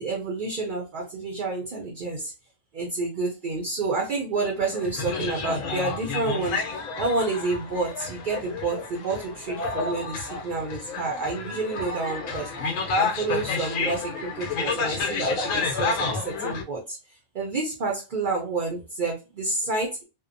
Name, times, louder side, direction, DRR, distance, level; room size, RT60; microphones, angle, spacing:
voice 1, 0.0-2.3 2.7-20.0, right 3 dB, 50° right, 0 dB, 0.6 m, -29 dB
sound 1, 4.6-16.6, left 4 dB, 80° left, 1.0 m, -30 dB
2.7 x 2.1 x 2.5 m, 0.30 s
omnidirectional pair, 1.3 m